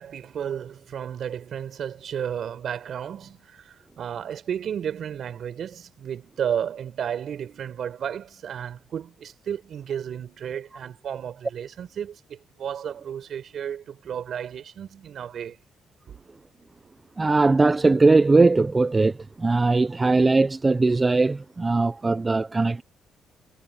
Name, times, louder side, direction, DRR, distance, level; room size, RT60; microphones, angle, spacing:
voice 1, 0.0-15.6 16.1-16.2, right 8 dB, 60° right, 7.6 m, -33 dB
voice 2, 17.2-22.8, right 3 dB, 25° right, 0.8 m, -20 dB
cardioid pair, 90°, 0 cm